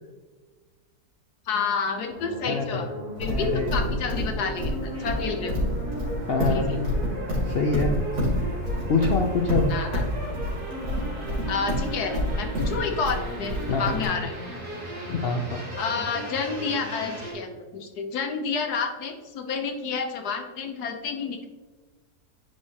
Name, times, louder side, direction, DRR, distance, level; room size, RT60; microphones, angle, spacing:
voice 1, 1.5-2.9 3.2-5.6 6.5-6.6 9.7-10.0 11.5-14.3 15.8-21.5, left 5 dB, 65° left, 4 dB, 1.3 m, -29 dB
sound 1, 2.1-17.3, equal, 30° right, 2.1 m, -36 dB
voice 2, 2.5-2.8 3.3-3.7 4.9-5.1 6.3-6.7 7.4-8.0 8.9-9.7 13.7-14.0 15.1-15.6, left 4 dB, 85° left, 2 dB, 0.5 m, -25 dB
Livestock farm animals working animals, 3.2-14.0, equal, 70° right, 3.1 m, -27 dB
10.5 x 4.7 x 2.9 m, 1.3 s
omnidirectional pair, 1.9 m